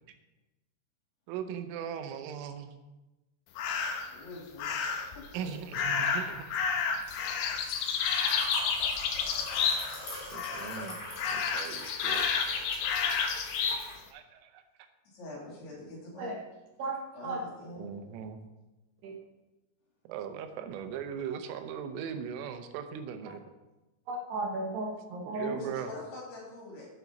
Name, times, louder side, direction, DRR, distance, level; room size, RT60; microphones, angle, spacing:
voice 1, 1.3-2.7 5.3-6.5 10.3-11.0 11.3-12.3 14.1-14.6 17.8-18.4 20.1-23.4 25.3-25.9, right 8 dB, 90° right, 8 dB, 3.4 m, -39 dB
sound 1, 3.6-4.1 4.6-5.2 5.7-10.1 10.3-10.9 11.2-13.8, left 6 dB, 80° left, 2.3 m, -30 dB
voice 2, 4.1-4.7 5.1-5.5 15.1-16.3 17.1-17.9 25.5-26.9, left 2 dB, 60° left, -4 dB, 4.5 m, -44 dB
Liquid, 5.7-13.9, left 1 dB, 30° left, 5.1 m, -43 dB
voice 3, 24.1-25.6, right 2 dB, 70° right, -1 dB, 2.9 m, -34 dB
11.0 x 8.8 x 4.0 m, 1.1 s
omnidirectional pair, 5.6 m